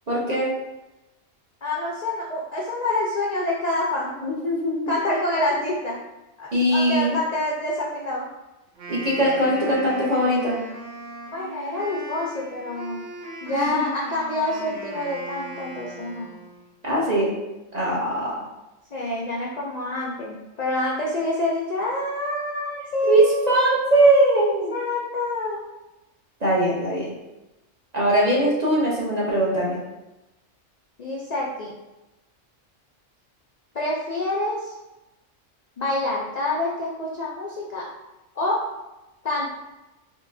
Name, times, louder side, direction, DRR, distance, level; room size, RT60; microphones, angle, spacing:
voice 1, 0.1-0.5 4.2-4.9 6.5-7.2 8.9-10.6 13.5-14.0 16.8-17.4 17.7-18.4 23.0-24.7 26.4-27.1 27.9-29.8, right 1 dB, 40° right, -5 dB, 0.7 m, -21 dB
voice 2, 1.6-4.1 4.9-6.0 6.4-8.2 11.3-13.1 13.4-16.4 18.9-23.7 24.7-25.6 31.0-31.7 33.7-34.8 35.8-37.9 38.4-38.6 39.2-39.6, left 2 dB, 60° left, -3 dB, 0.4 m, -27 dB
Wind instrument woodwind instrument, 8.7-16.7, right 2 dB, 70° right, 1.2 m, -38 dB
3.7 x 3.1 x 2.5 m, 1.0 s
omnidirectional pair, 1.3 m